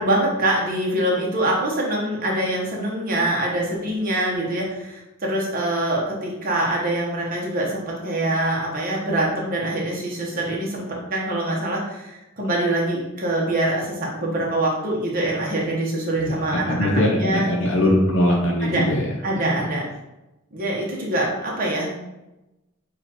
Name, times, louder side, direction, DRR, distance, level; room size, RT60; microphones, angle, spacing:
voice 1, 0.0-17.5 18.6-18.8 19.2-19.8 20.5-22.0, right 1 dB, 45° right, -3 dB, 1.1 m, -24 dB
voice 2, 16.1-19.2 19.6-19.7, left 1 dB, 75° left, -2 dB, 0.7 m, -21 dB
6.7 x 2.5 x 3.0 m, 0.97 s
head